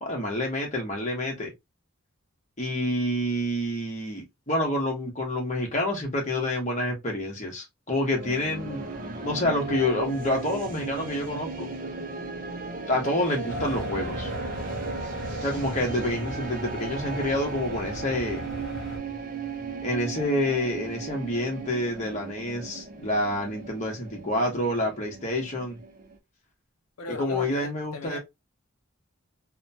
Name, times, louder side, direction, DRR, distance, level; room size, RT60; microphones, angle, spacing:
voice 1, 0.0-1.5 2.6-8.8 9.2-11.7 12.9-14.3 15.4-18.4 19.8-25.8 27.1-28.2, left 1 dB, 35° left, 1.0 m, -28 dB
sound 1, 8.0-26.2, right 3 dB, 40° right, 0.4 m, -36 dB
sound 2, 13.5-19.0, left 1 dB, 50° left, 1.2 m, -37 dB
voice 2, 27.0-28.2, left 4 dB, 85° left, 0.6 m, -37 dB
2.9 x 2.2 x 2.6 m
head